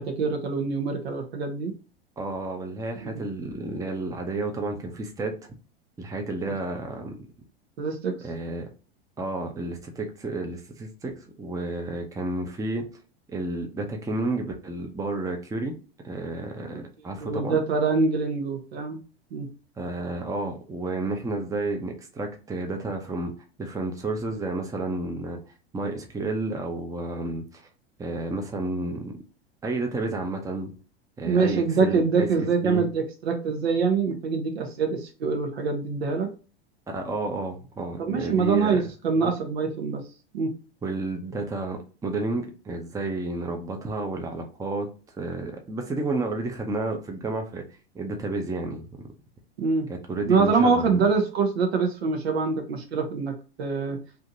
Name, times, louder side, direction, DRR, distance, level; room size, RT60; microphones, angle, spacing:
voice 1, 0.0-1.7 3.0-3.2 7.8-8.2 17.2-19.0 19.3-19.5 31.2-36.3 38.0-40.0 40.3-40.5 49.6-49.9 50.3-54.0, right 4 dB, 75° right, 1.1 m, -25 dB
voice 2, 2.2-5.3 6.0-7.2 8.2-8.7 9.2-12.9 13.3-15.7 16.0-17.6 19.8-23.3 23.6-25.4 25.7-27.7 28.0-29.1 29.6-30.7 31.2-32.9 36.9-38.8 39.2-39.3 40.8-44.9 45.2-47.6 47.9-49.0 49.9-51.0, right 2 dB, 10° right, 0.7 m, -31 dB
3.4 x 2.8 x 2.6 m
hypercardioid pair, 100°, 31 cm